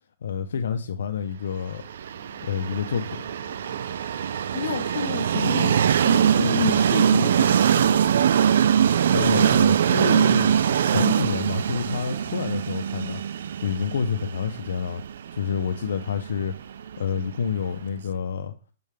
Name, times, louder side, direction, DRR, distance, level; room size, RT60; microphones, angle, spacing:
voice 1, 0.2-1.8 2.4-3.2 9.1-13.2 13.6-15.0 15.3-16.5 17.0-18.5, left 6 dB, 80° left, 0.6 m, -28 dB
sound 1, 1.7-15.1, right 1 dB, 5° left, 1.5 m, -52 dB
Train, 1.9-17.7, right 8 dB, 65° right, 0.3 m, -22 dB
voice 2, 4.5-8.0, left 6 dB, 60° left, 0.9 m, -30 dB
6.6 x 5.4 x 3.3 m
hypercardioid pair, 165°, 0 cm